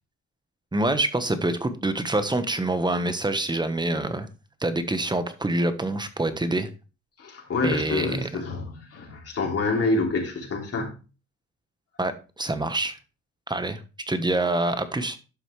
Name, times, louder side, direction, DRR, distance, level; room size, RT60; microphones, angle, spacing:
voice 1, 0.7-4.3 4.6-6.7 7.6-8.3 12.0-13.0 13.5-13.8 14.1-15.2, right 2 dB, 15° right, 1.2 m, -26 dB
voice 2, 7.2-10.9, left 3 dB, 50° left, 3.5 m, -27 dB
11.5 x 6.1 x 3.2 m
cardioid pair, 90°, 30 cm